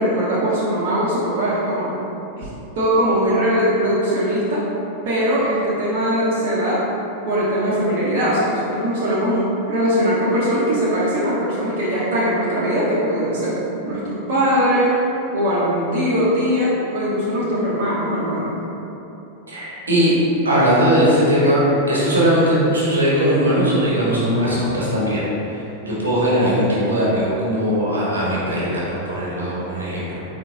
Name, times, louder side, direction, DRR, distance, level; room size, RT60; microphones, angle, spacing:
voice 1, 0.0-1.9 2.4-2.5 2.8-4.6 5.0-6.8 7.3-13.5 13.8-14.9 15.3-18.5, equal, 50° right, -9 dB, 0.8 m, -20 dB
voice 2, 19.5-20.1 20.4-25.6 25.9-30.2, equal, 75° right, -7 dB, 1.0 m, -19 dB
4.6 x 3.3 x 2.6 m, 2.9 s
figure-of-eight pair, 90°, 0 cm